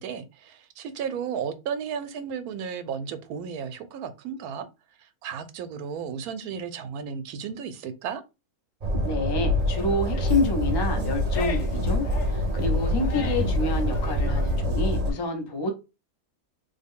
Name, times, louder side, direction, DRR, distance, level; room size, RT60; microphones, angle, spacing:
voice 1, 0.0-4.7 5.0-8.2, right 7 dB, 85° right, 1.1 m, -34 dB
Train, 8.8-15.1, left 1 dB, 55° right, 0.4 m, -25 dB
voice 2, 9.0-15.7, left 2 dB, 35° left, 0.3 m, -28 dB
sound 1, 9.6-14.6, left 6 dB, 60° left, 0.8 m, -40 dB
3.5 x 2.1 x 3.5 m
omnidirectional pair, 1.5 m